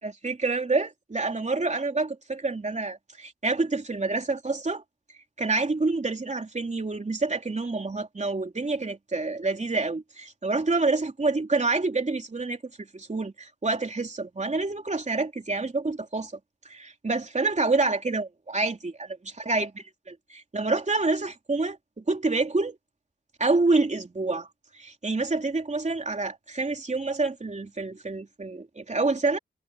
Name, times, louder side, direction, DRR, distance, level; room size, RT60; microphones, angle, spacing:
voice 1, 0.0-4.8 5.4-16.3 16.6-22.8 23.4-24.5 24.7-29.4, right 3 dB, 35° right, 3.3 m, -27 dB
cardioid pair, 70°, 20 cm